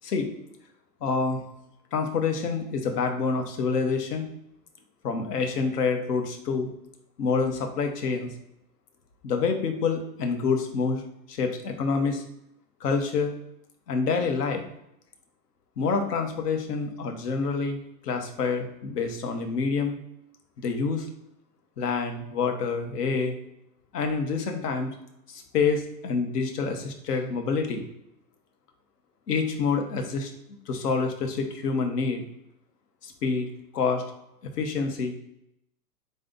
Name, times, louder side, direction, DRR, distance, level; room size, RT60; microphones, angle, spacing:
voice 1, 1.0-1.4 1.9-4.3 5.0-6.7 7.2-8.3 9.2-11.0 11.3-12.2 12.8-13.3 13.9-14.6 15.8-20.0 20.6-21.1 21.8-23.3 23.9-24.9 25.3-27.9 29.3-30.3 30.7-32.2 33.0-33.5 33.7-34.0 34.4-35.1, left 5 dB, 70° left, 5 dB, 1.2 m, -27 dB
3.9 x 3.2 x 3.8 m, 0.81 s
hypercardioid pair, 125°, 50 cm